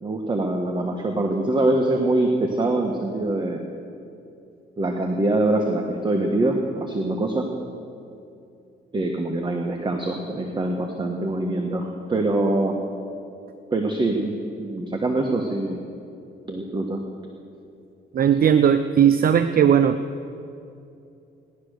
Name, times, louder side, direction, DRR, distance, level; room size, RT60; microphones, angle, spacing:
voice 1, 0.0-3.6 4.8-7.5 8.9-12.8 13.7-15.8 16.5-17.0, right 2 dB, 25° right, 2 dB, 1.4 m, -24 dB
voice 2, 18.1-20.0, right 8 dB, 50° right, 10 dB, 0.6 m, -17 dB
17.5 x 11.5 x 6.6 m, 2.6 s
cardioid pair, 90°, 20 cm